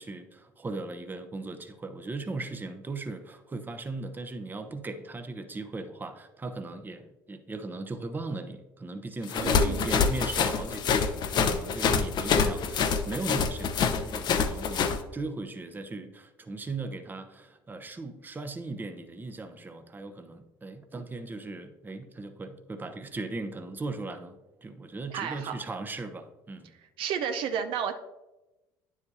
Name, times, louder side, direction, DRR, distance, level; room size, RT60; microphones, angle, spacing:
voice 1, 0.0-26.7, right 3 dB, 20° right, 7 dB, 0.8 m, -38 dB
sound 1, 9.3-15.0, left 6 dB, 50° left, 0.7 m, -26 dB
voice 2, 9.4-9.9 25.1-25.6 27.0-27.9, right 7 dB, 65° right, 7 dB, 0.6 m, -32 dB
9.4 x 7.3 x 2.7 m, 1.1 s
supercardioid pair, 85°, 9 cm